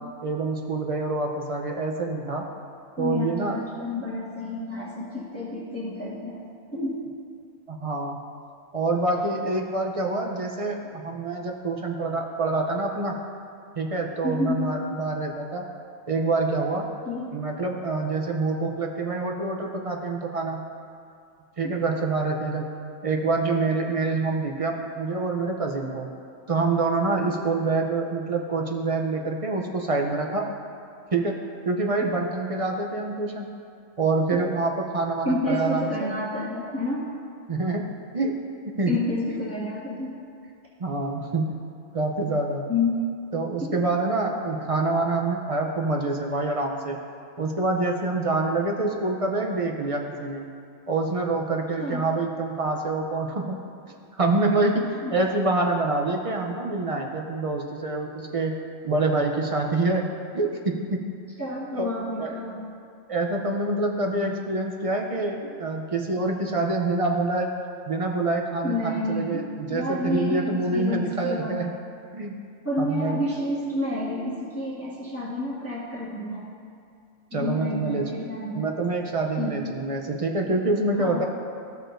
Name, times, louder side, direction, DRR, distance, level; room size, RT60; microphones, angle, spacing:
voice 1, 0.2-2.5 3.0-3.6 7.7-8.2 8.7-13.2 13.8-15.6 16.1-16.8 17.3-20.6 21.6-22.6 23.0-26.1 26.5-30.5 31.1-31.4 31.6-33.5 34.0-36.1 37.5-37.9 38.1-38.4 38.8-39.0 40.8-41.5 41.9-42.6 43.3-47.0 47.4-50.5 50.9-53.6 54.2-58.5 58.8-60.0 60.3-61.0 61.7-61.9 62.2-62.3 63.1-67.5 67.9-71.7 72.1-72.3 72.8-73.2 77.3-78.0 78.6-81.3, right 3 dB, 40° right, 1 dB, 0.6 m, -26 dB
voice 2, 3.0-6.4 6.7-7.0 14.2-14.6 17.0-17.3 35.2-37.0 38.8-40.1 42.7-42.9 43.6-43.8 51.8-52.0 55.0-55.1 61.4-62.7 68.6-71.6 72.6-76.5 77.3-78.7 79.4-79.8 81.0-81.2, left 2 dB, 10° left, -8 dB, 1.4 m, -29 dB
14.0 x 6.5 x 2.6 m, 2.4 s
omnidirectional pair, 1.2 m